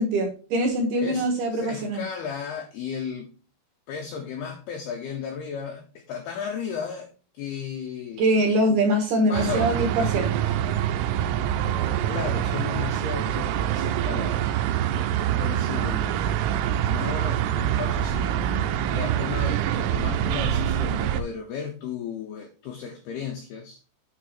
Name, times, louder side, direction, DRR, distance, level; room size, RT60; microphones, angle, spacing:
voice 1, 0.0-2.0 8.2-10.5, right 1 dB, 65° right, 0 dB, 2.9 m, -23 dB
voice 2, 1.0-3.3 3.9-7.1 7.3-8.2 9.3-9.7 12.1-14.5 15.4-16.1 16.9-23.8, left 7 dB, 90° left, 4 dB, 2.2 m, -34 dB
sound 1, 9.3-21.2, right 10 dB, 85° right, 3.1 m, -25 dB
9.0 x 4.7 x 4.3 m, 0.37 s
omnidirectional pair, 5.8 m